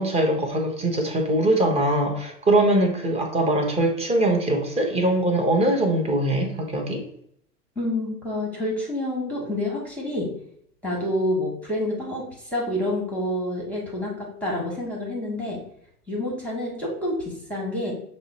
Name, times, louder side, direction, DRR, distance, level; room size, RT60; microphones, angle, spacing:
voice 1, 0.0-7.0, right 1 dB, 15° right, 2 dB, 0.8 m, -22 dB
voice 2, 7.8-10.3 10.8-15.6 16.1-17.9, left 1 dB, 5° left, -3 dB, 1.2 m, -28 dB
5.9 x 2.1 x 4.0 m, 0.70 s
hypercardioid pair, 100°, 47 cm